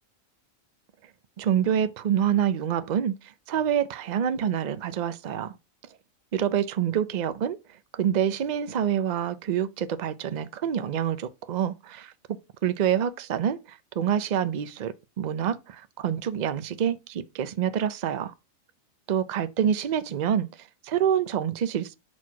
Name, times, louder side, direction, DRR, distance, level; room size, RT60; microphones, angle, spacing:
voice 1, 1.4-5.5 6.3-7.6 7.9-18.3 19.1-22.0, right 9 dB, 55° right, 0.4 m, -27 dB
4.5 x 4.4 x 5.8 m
omnidirectional pair, 1.4 m